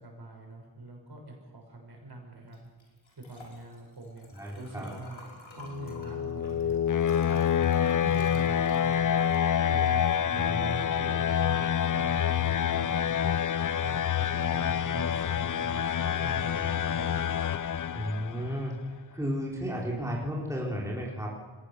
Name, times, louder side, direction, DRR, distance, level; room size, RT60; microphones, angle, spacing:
voice 1, 0.0-2.6 3.3-6.8 7.3-9.2 9.7-13.4 13.8-17.2, right 2 dB, 50° right, 1 dB, 6.6 m, -44 dB
Liquid, 2.5-12.6, left 3 dB, 65° left, 5.5 m, -50 dB
voice 2, 4.3-4.9 10.3-10.9 17.9-18.8 19.1-21.3, equal, 5° right, -3 dB, 4.3 m, -33 dB
sound 1, 5.7-18.5, left 9 dB, 40° left, 0.5 m, -27 dB
22.0 x 17.5 x 6.8 m, 1.4 s
cardioid pair, 65°, 49 cm